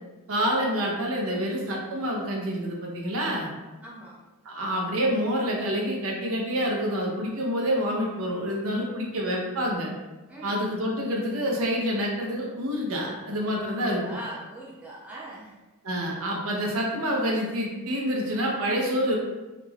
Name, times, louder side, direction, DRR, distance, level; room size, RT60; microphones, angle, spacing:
voice 1, 0.3-3.5 4.4-9.9 10.4-14.0 15.8-19.1, equal, 70° right, -1 dB, 0.6 m, -27 dB
voice 2, 3.8-4.2 10.3-10.6 14.0-15.6, right 1 dB, 5° right, -6 dB, 0.3 m, -41 dB
2.4 x 2.2 x 3.2 m, 1.1 s
head